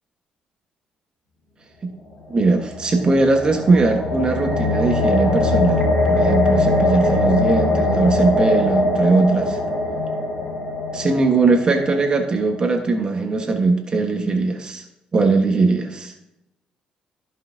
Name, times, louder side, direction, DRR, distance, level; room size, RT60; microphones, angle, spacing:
sound 1, 2.3-12.4, left 2 dB, 50° left, 2.2 m, -21 dB
voice 1, 2.3-9.6 10.9-14.8 15.1-16.1, right 3 dB, 35° right, 3 dB, 1.2 m, -20 dB
14.0 x 5.6 x 2.7 m, 0.88 s
cardioid pair, 105°, 3 cm